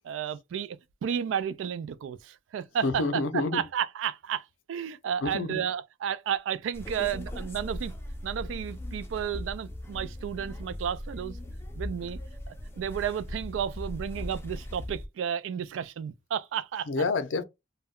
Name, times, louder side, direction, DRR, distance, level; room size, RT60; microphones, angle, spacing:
voice 1, 0.0-3.2 3.5-7.9 8.2-11.4 11.8-12.2 12.5-16.9, right 8 dB, 90° right, 0.3 m, -32 dB
voice 2, 2.8-3.6 5.2-5.6 16.9-17.4, left 3 dB, 85° left, 0.5 m, -28 dB
sound 1, 6.7-15.1, left 1 dB, 15° left, 0.4 m, -39 dB
2.2 x 2.1 x 3.5 m
head